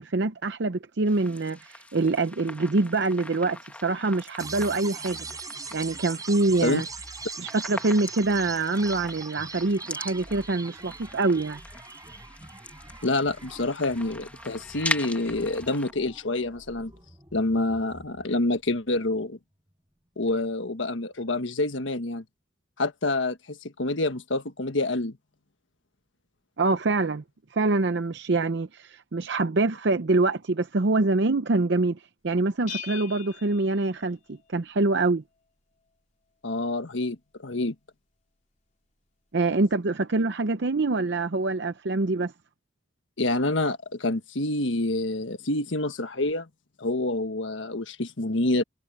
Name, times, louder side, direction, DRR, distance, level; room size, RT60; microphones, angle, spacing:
voice 1, 0.0-5.3 5.7-6.8 7.4-11.6 26.6-27.2 27.5-35.2 39.3-42.3, right 3 dB, 65° right, 0.7 m, -25 dB
sound 1, 1.1-15.9, left 1 dB, 10° left, 1.4 m, -40 dB
sound 2, 4.4-18.4, right 4 dB, 20° right, 5.7 m, -42 dB
voice 2, 13.0-16.9 17.3-19.4 20.2-22.2 22.8-25.2 36.4-37.7 43.2-46.5 46.8-48.6, left 2 dB, 90° left, 1.5 m, -27 dB
Bell, 32.7-34.5, left 8 dB, 40° left, 3.4 m, -41 dB
head